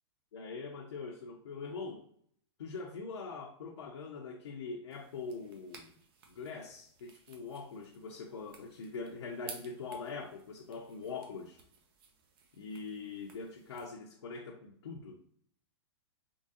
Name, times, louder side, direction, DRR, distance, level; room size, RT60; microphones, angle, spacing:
voice 1, 0.3-2.0 2.6-6.0 6.3-11.6 12.6-15.2, left 4 dB, 80° left, 0.6 m, -43 dB
sound 1, 4.9-13.9, right 5 dB, 55° right, 0.8 m, -56 dB
3.6 x 3.0 x 2.7 m
hypercardioid pair, 125°, 15 cm